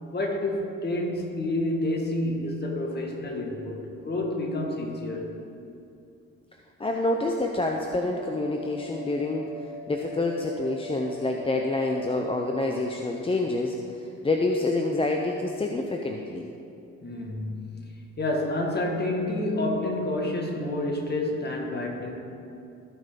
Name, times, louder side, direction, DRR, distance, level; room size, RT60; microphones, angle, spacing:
voice 1, 0.1-5.3 17.0-22.1, left 1 dB, 35° left, 0 dB, 1.8 m, -29 dB
voice 2, 6.8-9.5 9.9-13.7 14.2-16.5, left 2 dB, 20° left, 2 dB, 0.6 m, -27 dB
sound 1, 7.4-12.8, right 1 dB, 40° right, 1.5 m, -41 dB
16.0 x 5.5 x 3.8 m, 2.6 s
cardioid pair, 90°, 30 cm